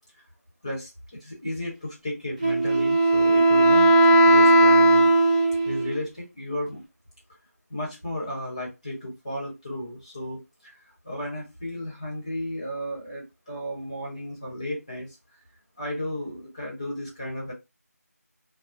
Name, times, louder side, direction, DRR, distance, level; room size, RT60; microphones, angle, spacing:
voice 1, 1.2-5.1 5.6-6.8 7.7-10.7 11.0-15.1 15.8-17.5, left 1 dB, 20° left, -4 dB, 1.0 m, -34 dB
Wind instrument woodwind instrument, 2.4-6.0, right 1 dB, 25° right, 0.7 m, -17 dB
3.0 x 2.0 x 2.5 m, 0.23 s
figure-of-eight pair, 175°, 9 cm